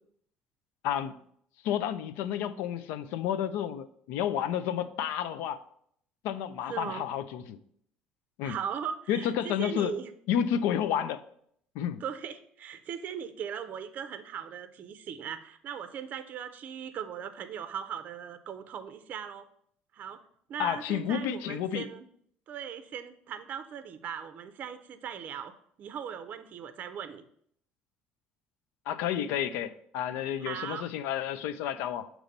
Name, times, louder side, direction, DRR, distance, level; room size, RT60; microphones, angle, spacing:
voice 1, 0.8-1.2 1.6-5.6 6.2-7.6 8.4-8.5 9.1-9.9 10.3-11.2 11.7-12.0 20.6-21.9 28.9-32.1, left 9 dB, 85° left, 12 dB, 0.4 m, -31 dB
voice 2, 6.7-7.0 8.4-10.1 12.0-19.5 19.9-20.2 20.5-22.1 22.5-25.5 25.8-27.2 30.4-30.9, right 8 dB, 50° right, 10 dB, 0.5 m, -39 dB
6.6 x 3.1 x 5.2 m, 0.66 s
cardioid pair, 115°, 4 cm